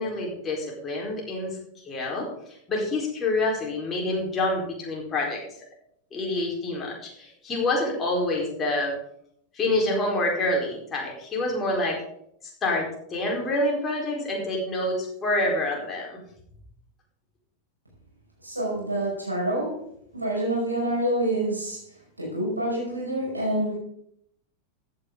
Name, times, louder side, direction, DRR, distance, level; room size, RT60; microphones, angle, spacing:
voice 1, 0.0-1.6 1.8-2.3 2.7-5.4 6.1-8.9 9.5-12.0 12.4-12.8 13.1-16.2, left 2 dB, 25° left, -1 dB, 4.5 m, -27 dB
voice 2, 18.4-19.8 20.1-21.8 22.2-23.7, right 1 dB, 85° right, -3 dB, 5.9 m, -27 dB
14.5 x 9.7 x 4.0 m, 0.72 s
figure-of-eight pair, 90°, 0 cm